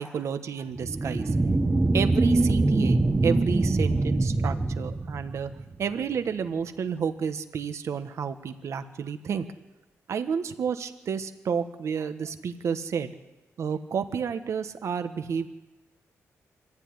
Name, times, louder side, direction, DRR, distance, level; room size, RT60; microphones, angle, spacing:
voice 1, 0.0-1.3 1.9-5.5 5.8-9.5 10.1-13.1 13.6-15.5, right 6 dB, 65° right, 9 dB, 1.5 m, -30 dB
sound 1, 0.8-5.8, right 2 dB, 20° right, 1.0 m, -24 dB
25.5 x 14.0 x 9.8 m, 1.0 s
wide cardioid pair, 135°, 5 cm